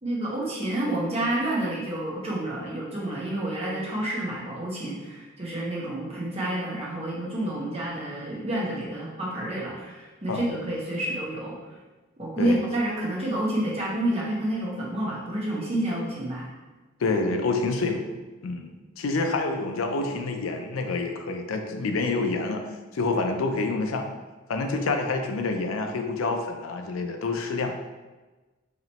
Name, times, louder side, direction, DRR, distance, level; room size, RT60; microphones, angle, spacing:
voice 1, 0.0-11.6 12.2-16.5, right 1 dB, 30° right, -5 dB, 0.9 m, -29 dB
voice 2, 17.0-18.0 18.4-22.6 22.9-24.1 24.5-27.7, left 3 dB, 90° left, 5 dB, 0.5 m, -27 dB
3.0 x 3.0 x 4.0 m, 1.2 s
head